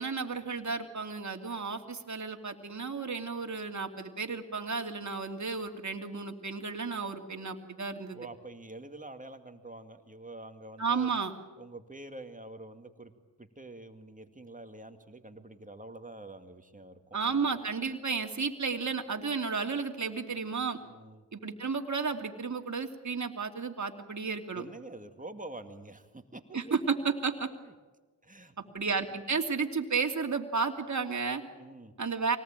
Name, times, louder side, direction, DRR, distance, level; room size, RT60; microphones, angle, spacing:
voice 1, 0.0-8.2 10.8-11.3 17.1-20.8 21.3-24.6 26.5-27.5 28.7-31.4 32.0-32.4, right 5 dB, 40° right, 5 dB, 2.8 m, -32 dB
voice 2, 8.1-11.1 11.6-13.1 13.4-17.5 20.9-21.3 24.5-26.6 27.6-27.7 28.2-28.7 31.5-31.9, right 2 dB, 15° right, 7 dB, 2.3 m, -47 dB
24.5 x 18.5 x 9.0 m, 1.3 s
cardioid pair, 55°, 44 cm